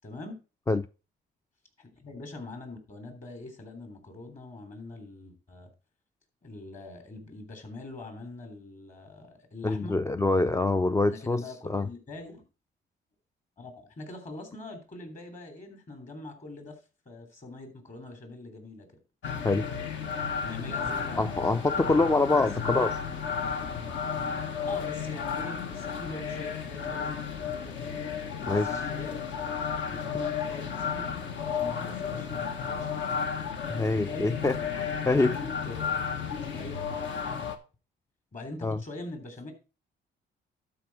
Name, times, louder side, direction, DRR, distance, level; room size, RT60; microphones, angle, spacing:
voice 1, 0.0-0.4 1.8-5.7 6.4-10.0 11.1-12.4 13.6-16.8 17.0-18.9 20.4-21.2 21.8-22.9 24.7-29.2 29.9-31.2 31.4-33.3 34.0-34.3 35.1-36.0 36.4-36.8 37.2-37.3 38.3-39.5, left 2 dB, 40° left, 3.3 m, -43 dB
voice 2, 9.6-11.9 19.4-19.6 21.2-23.0 28.5-28.8 33.7-35.4 38.6-38.8, left 3 dB, 15° left, 0.3 m, -25 dB
sound 1, 19.2-37.6, left 6 dB, 70° left, 1.3 m, -33 dB
12.0 x 4.8 x 4.7 m
cardioid pair, 90°, 20 cm